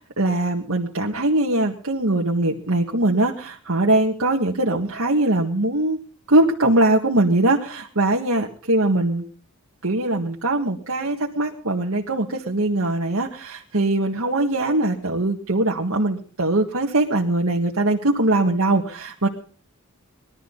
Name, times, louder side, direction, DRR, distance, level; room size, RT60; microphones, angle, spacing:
voice 1, 0.2-6.0 6.3-9.2 9.8-19.3, right 2 dB, 80° right, -1 dB, 1.8 m, -21 dB
21.5 x 13.0 x 4.0 m, 0.43 s
head